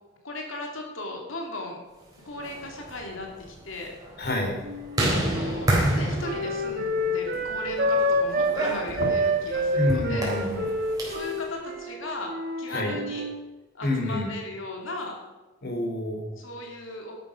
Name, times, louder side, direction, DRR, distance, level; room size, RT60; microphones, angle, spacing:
voice 1, 0.2-1.8 2.2-3.9 5.1-10.3 11.1-13.2 13.7-15.2 16.4-17.1, left 2 dB, 75° left, 1 dB, 2.8 m, -36 dB
sound 1, 2.3-11.4, right 1 dB, 20° right, 4.0 m, -30 dB
voice 2, 4.2-4.6 9.7-10.7 12.7-12.9 13.8-14.3 15.6-16.4, left 1 dB, 55° left, 2 dB, 3.7 m, -28 dB
Wind instrument woodwind instrument, 4.6-8.6 9.0-13.4, equal, 50° right, 1.7 m, -28 dB
12.0 x 11.0 x 5.1 m, 1.2 s
head